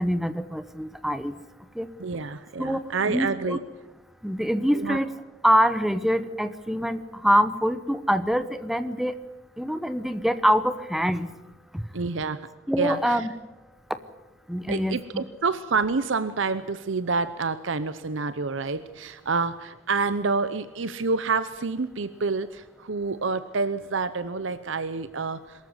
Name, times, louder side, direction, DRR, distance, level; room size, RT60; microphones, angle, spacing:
voice 1, 0.0-1.3 1.8-1.9 2.6-3.6 4.2-5.1 5.4-9.1 9.6-11.3 11.7-11.8 12.7-13.3 14.5-15.2, equal, ahead, 12 dB, 1.0 m, -25 dB
voice 2, 2.0-3.6 4.7-5.0 11.9-12.4 12.8-13.3 14.7-25.7, right 4 dB, 65° right, 13 dB, 0.8 m, -28 dB
23.0 x 14.0 x 9.7 m, 1.1 s
head